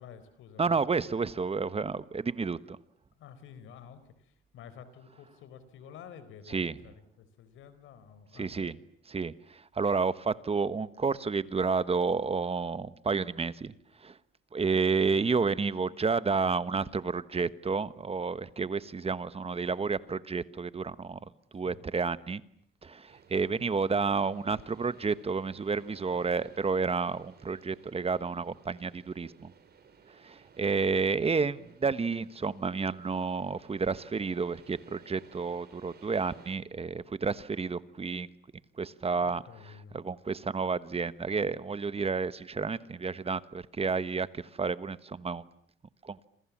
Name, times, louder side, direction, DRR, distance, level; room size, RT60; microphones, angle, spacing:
voice 1, 0.0-0.8 3.2-8.7 21.6-21.8 23.3-23.7 39.2-40.0, left 7 dB, 85° left, 13 dB, 4.3 m, -51 dB
voice 2, 0.6-2.8 6.5-6.7 8.4-8.7 9.1-13.7 14.0-14.2 14.5-21.2 21.5-22.4 22.8-29.5 30.2-38.3 38.8-39.4 39.9-45.4 46.0-46.2, right 4 dB, 30° right, 15 dB, 1.2 m, -30 dB
sound 1, 23.1-36.6, right 6 dB, 55° right, 4.9 m, -58 dB
29.0 x 27.5 x 7.4 m, 0.65 s
cardioid pair, 90°, 20 cm